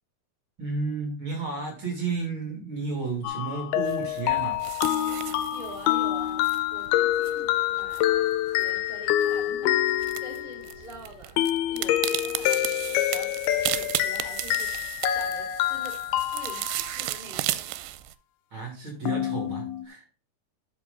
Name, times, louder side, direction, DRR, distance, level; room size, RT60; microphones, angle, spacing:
voice 1, 0.6-4.6 18.5-20.1, right 4 dB, 35° right, 0 dB, 3.0 m, -32 dB
sound 1, 3.2-10.8 11.4-17.0 19.1-19.9, left 13 dB, 85° left, 2.5 m, -27 dB
sound 2, 3.8-18.1, right 15 dB, 85° right, 2.6 m, -35 dB
voice 2, 5.5-9.8 10.2-11.3 11.7-16.0 16.3-17.7, right 1 dB, 20° right, -3 dB, 2.3 m, -46 dB
11.5 x 5.3 x 3.9 m, 0.35 s
omnidirectional pair, 4.5 m